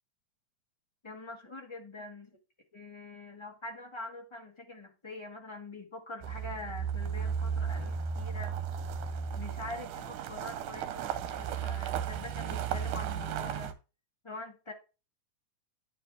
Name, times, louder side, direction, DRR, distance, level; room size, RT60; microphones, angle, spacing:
voice 1, 1.0-2.3 2.7-8.5 9.4-13.7 14.2-14.7, left 2 dB, 45° left, 1 dB, 0.3 m, -44 dB
sound 1, 6.2-13.7, right 7 dB, 75° right, 2.4 m, -35 dB
9.8 x 6.5 x 3.4 m, 0.30 s
omnidirectional pair, 3.7 m